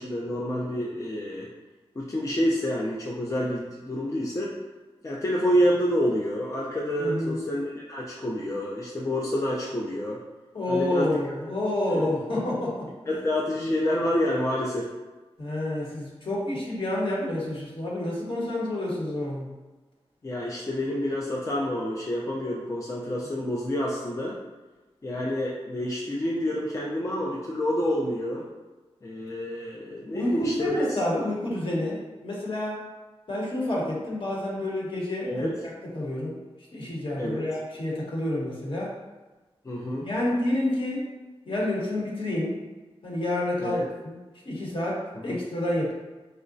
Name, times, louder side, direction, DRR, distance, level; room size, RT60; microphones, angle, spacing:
voice 1, 0.0-1.5 2.0-4.5 5.0-10.2 10.7-11.1 11.9-12.1 13.1-14.9 20.2-24.3 25.0-28.5 29.0-31.0 35.3-35.5 37.2-37.5 39.6-40.1 43.6-43.9 45.3-45.4, equal, 30° left, -4 dB, 0.4 m, -28 dB
voice 2, 7.0-7.4 10.5-12.9 15.4-19.5 30.1-32.8 33.3-35.5 35.9-36.4 36.7-38.9 40.0-41.1 41.5-42.6 43.0-44.2 44.4-45.9, left 1 dB, 55° left, -4 dB, 1.0 m, -28 dB
4.6 x 2.1 x 2.5 m, 1.2 s
wide cardioid pair, 95°, 11 cm